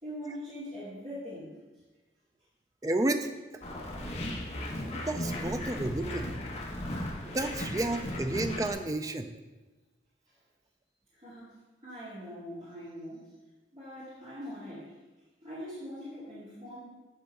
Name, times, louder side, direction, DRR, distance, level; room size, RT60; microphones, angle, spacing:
voice 1, 0.0-1.5 11.1-11.5 11.8-13.3 13.7-14.9 15.4-16.8, equal, 35° right, -13 dB, 2.3 m, -42 dB
voice 2, 2.8-3.4 5.1-6.3 7.2-9.3, right 2 dB, 20° right, 7 dB, 0.4 m, -31 dB
sound 1, 3.6-8.7, left 1 dB, 40° left, 1.1 m, -36 dB
8.0 x 3.6 x 6.4 m, 1.2 s
head